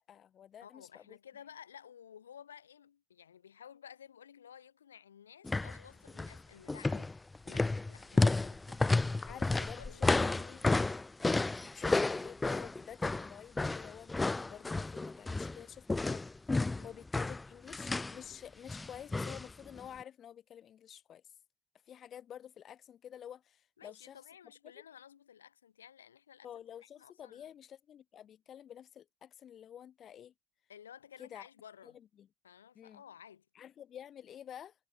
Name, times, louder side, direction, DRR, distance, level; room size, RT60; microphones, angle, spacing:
voice 1, 0.0-1.2 9.3-10.6 11.6-16.2 16.5-21.2 21.9-24.2 26.4-30.3 31.2-31.4 31.8-32.3 32.7-33.0 33.5-34.7, left 9 dB, 50° left, 5.5 m, -50 dB
voice 2, 0.6-7.2 7.4-8.9 9.3-10.5 16.8-17.0 23.8-26.5 27.0-27.5 30.7-32.0 32.4-33.5, left 8 dB, 85° left, 4.5 m, -55 dB
sound 1, 5.4-5.8 6.1-6.4 6.7-15.6 15.9-18.2 18.7-19.5 19.8-19.9, left 3 dB, 20° left, 0.7 m, -31 dB
hypercardioid pair, 55°, 0 cm